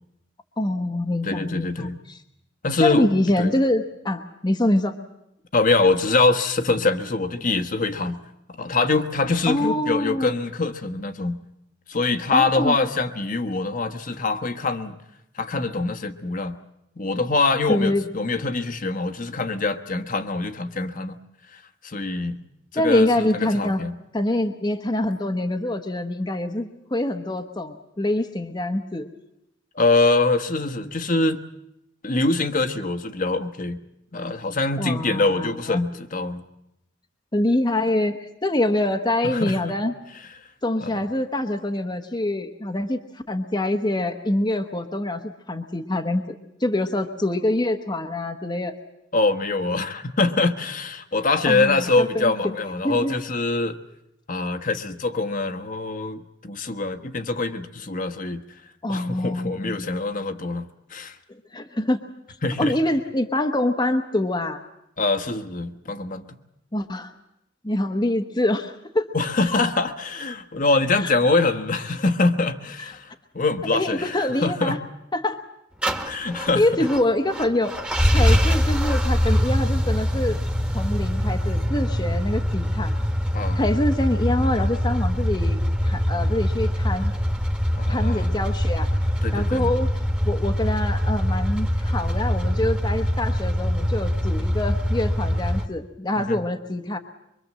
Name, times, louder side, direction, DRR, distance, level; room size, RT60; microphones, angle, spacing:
voice 1, 0.6-2.2 2.8-5.0 9.5-10.3 12.3-12.8 17.7-18.0 22.7-23.8 24.1-29.1 34.8-35.8 37.3-39.9 40.6-48.8 51.4-52.3 52.8-53.2 58.8-59.9 61.3-62.0 62.6-64.6 66.7-67.1 67.6-69.1 71.0-71.1 73.7-74.8 75.1-75.4 75.9-76.0 76.5-77.8 78.1-80.4 80.7-82.9 83.5-87.1 87.9-88.9 89.3-89.9 90.2-97.0, left 1 dB, 25° left, 5 dB, 1.1 m, -25 dB
voice 2, 1.2-1.9 2.6-3.1 3.4-3.5 5.5-8.2 8.6-11.4 11.9-14.9 15.3-16.6 17.0-21.2 21.5-22.4 22.7-23.9 29.7-31.4 32.0-33.8 34.1-36.4 39.2-39.7 40.8-40.9 49.1-53.7 54.3-58.4 58.9-61.2 62.4-62.7 65.0-66.3 69.1-74.8 76.0-76.6 78.1-78.4 83.3-83.6 87.8-88.3 89.2-89.7 96.2-96.4, left 3 dB, 45° left, 6 dB, 1.3 m, -24 dB
sound 1, 75.8-95.7, equal, 5° right, 1.6 m, -23 dB
24.5 x 23.5 x 7.6 m, 0.82 s
head